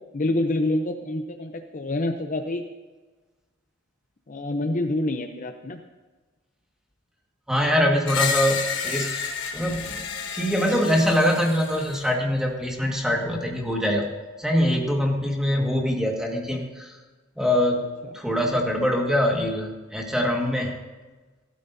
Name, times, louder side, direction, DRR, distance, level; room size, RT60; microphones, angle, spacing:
voice 1, 0.1-2.6 4.3-5.8, left 1 dB, 40° left, 6 dB, 0.6 m, -27 dB
voice 2, 7.5-14.1 14.4-17.0 17.4-17.9 18.1-20.8, equal, 5° right, 0 dB, 1.7 m, -24 dB
Screech, 8.1-12.1, left 6 dB, 60° left, 1.3 m, -30 dB
16.0 x 13.5 x 2.7 m, 1.2 s
head